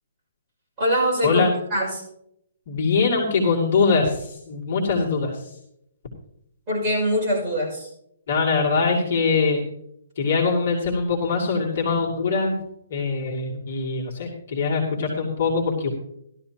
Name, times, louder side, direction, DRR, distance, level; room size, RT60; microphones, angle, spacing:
voice 1, 0.8-1.9 6.7-7.9, equal, 15° right, -7 dB, 5.9 m, -23 dB
voice 2, 2.7-5.5 8.3-9.6 10.2-12.6 12.9-15.9, left 4 dB, 45° left, -3 dB, 2.5 m, -22 dB
15.5 x 12.5 x 2.9 m, 0.75 s
hypercardioid pair, 175°, 0 cm